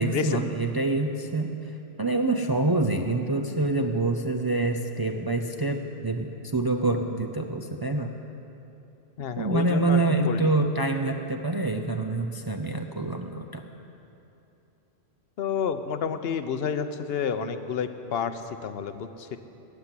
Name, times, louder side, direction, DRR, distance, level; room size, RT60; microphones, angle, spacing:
voice 1, 0.0-1.6 2.0-8.1 9.4-13.6, right 2 dB, 30° right, 4 dB, 0.4 m, -26 dB
voice 2, 9.2-10.6 15.4-19.4, left 7 dB, 70° left, 10 dB, 0.9 m, -30 dB
15.5 x 7.3 x 9.7 m, 2.9 s
omnidirectional pair, 1.1 m